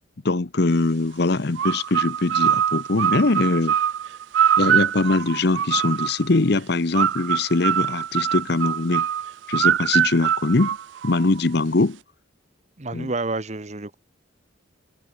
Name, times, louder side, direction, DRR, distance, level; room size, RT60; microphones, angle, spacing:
voice 1, 0.2-3.7 4.6-9.1 9.5-10.8 11.0-12.0 12.9-13.1, left 3 dB, 55° left, 0.8 m, -22 dB
sound 1, 1.6-6.3 6.9-11.4, right 9 dB, 70° right, 0.3 m, -23 dB
voice 2, 12.8-13.9, right 3 dB, 35° right, 1.1 m, -29 dB
head